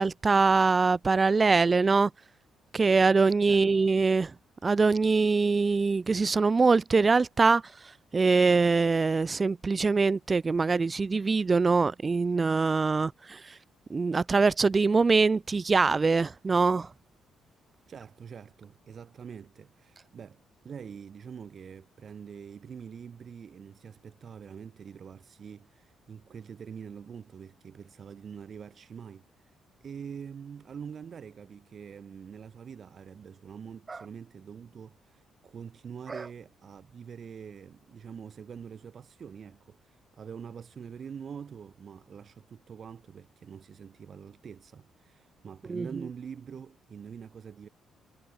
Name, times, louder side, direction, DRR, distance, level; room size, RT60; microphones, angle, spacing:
voice 1, 0.0-2.1 2.7-4.3 4.6-7.6 8.1-13.5 13.9-16.9 33.9-34.0 36.1-36.2 45.7-45.9, right 4 dB, 30° right, 0.3 m, -23 dB
voice 2, 3.4-3.8 17.9-47.7, right 7 dB, 50° right, 4.6 m, -45 dB
cardioid pair, 90°, 0 cm